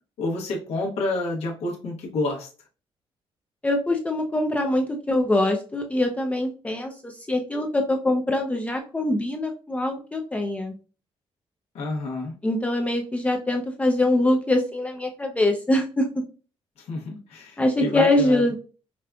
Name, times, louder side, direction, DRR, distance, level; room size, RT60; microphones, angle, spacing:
voice 1, 0.2-2.5 11.7-12.3 16.8-18.4, left 2 dB, 80° left, -1 dB, 0.9 m, -29 dB
voice 2, 3.6-10.7 12.4-16.1 17.6-18.6, left 1 dB, 15° left, 2 dB, 0.4 m, -23 dB
5.0 x 2.3 x 2.2 m, 0.36 s
cardioid pair, 130°, 10 cm